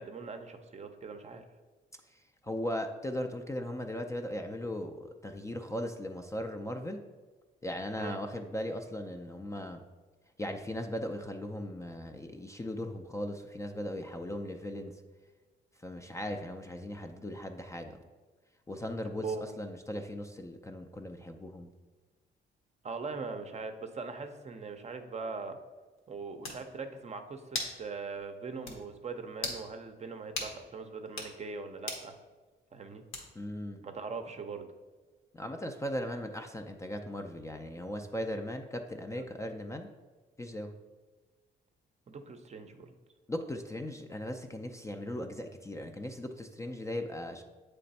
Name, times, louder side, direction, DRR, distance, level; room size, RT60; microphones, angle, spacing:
voice 1, 0.0-1.4 8.0-8.2 19.2-19.6 22.8-25.6 26.1-32.2 32.7-33.0 33.8-34.7 39.1-39.2 42.1-42.9, right 4 dB, 35° right, 7 dB, 0.6 m, -41 dB
voice 2, 2.1-7.0 7.6-9.8 10.4-14.9 15.8-18.0 18.7-19.3 19.6-21.7 33.4-33.8 35.3-39.9 40.4-40.7 43.3-47.4, left 1 dB, 15° left, 4 dB, 0.4 m, -38 dB
sound 1, 26.0-26.1 26.4-26.6 27.5-27.8 28.2-28.3 28.7-28.8 29.4-29.6 30.4-30.5 31.1-31.3 31.9-32.1 33.1-33.5, left 3 dB, 85° left, 1.2 m, -37 dB
7.6 x 3.3 x 4.0 m, 1.3 s
cardioid pair, 90°, 20 cm